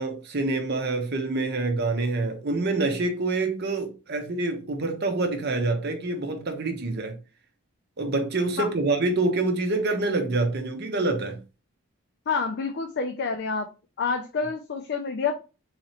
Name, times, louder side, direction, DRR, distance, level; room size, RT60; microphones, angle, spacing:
voice 1, 0.0-7.2 8.0-11.4, right 2 dB, 45° right, 0.8 m, -26 dB
voice 2, 12.3-13.7 14.0-15.4, left 5 dB, 50° left, 0.4 m, -28 dB
4.0 x 3.0 x 2.9 m
head